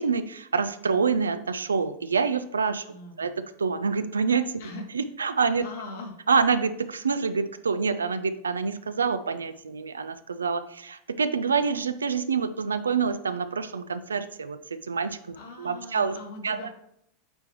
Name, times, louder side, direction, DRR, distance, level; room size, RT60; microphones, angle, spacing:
voice 1, 0.0-2.8 3.2-3.3 3.6-4.5 4.9-5.6 6.3-16.2 16.4-16.8, right 5 dB, 75° right, 12 dB, 0.4 m, -27 dB
voice 2, 2.9-3.4 4.6-4.8 5.6-6.1 15.3-16.8, left 2 dB, 65° left, 0 dB, 1.7 m, -41 dB
8.6 x 4.5 x 3.0 m, 0.75 s
figure-of-eight pair, 85°, 0 cm